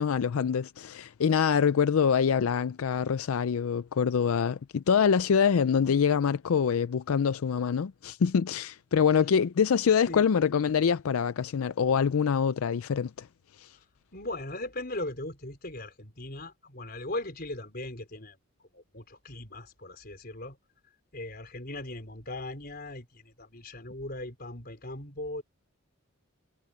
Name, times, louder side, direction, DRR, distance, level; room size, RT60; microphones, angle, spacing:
voice 1, 0.0-13.3 13.6-13.8, left 7 dB, 80° left, 0.4 m, -25 dB
voice 2, 14.1-18.4 18.7-20.6 21.1-25.4, left 1 dB, 45° left, 4.4 m, -39 dB
head